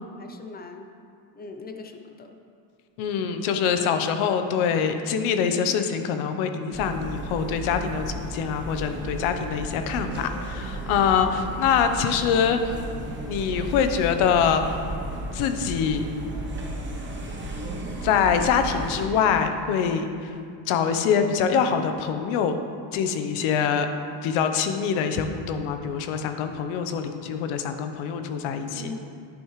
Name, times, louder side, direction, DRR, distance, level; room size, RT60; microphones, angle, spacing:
voice 1, 0.2-0.9 1.3-2.4 28.7-29.1, left 4 dB, 20° left, 5 dB, 0.4 m, -40 dB
voice 2, 3.0-12.6 13.3-14.6 15.3-16.0 18.0-20.1 20.7-22.6 22.9-23.9 24.2-28.9, left 7 dB, 85° left, 7 dB, 0.9 m, -24 dB
sound 1, 6.7-19.1, right 2 dB, 25° right, 1.0 m, -34 dB
10.0 x 9.3 x 3.2 m, 2.4 s
cardioid pair, 150°, 47 cm